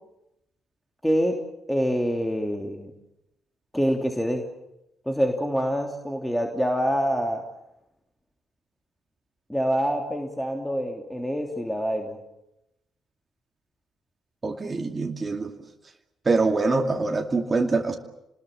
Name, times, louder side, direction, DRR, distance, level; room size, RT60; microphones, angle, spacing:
voice 1, 1.0-1.4 1.7-2.9 3.7-4.4 5.1-7.4 9.5-12.2, equal, 5° left, 2 dB, 3.2 m, -26 dB
voice 2, 14.4-15.5 16.3-17.9, right 3 dB, 30° right, 3 dB, 2.5 m, -24 dB
29.0 x 20.5 x 7.5 m, 0.88 s
figure-of-eight pair, 45°, 0 cm